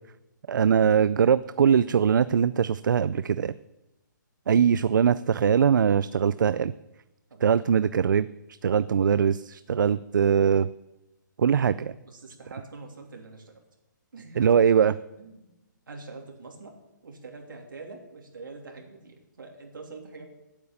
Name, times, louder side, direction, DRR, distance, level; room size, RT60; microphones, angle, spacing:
voice 1, 0.5-3.5 4.5-6.7 7.4-8.3 8.6-10.7 11.4-11.9 14.4-14.9, right 7 dB, 70° right, 15 dB, 0.4 m, -21 dB
voice 2, 7.3-7.9 12.0-13.6 14.1-14.5 15.2-15.5 15.9-16.8 17.0-20.3, right 3 dB, 90° right, 2 dB, 3.1 m, -45 dB
8.6 x 8.3 x 8.8 m, 0.98 s
hypercardioid pair, 175°, 11 cm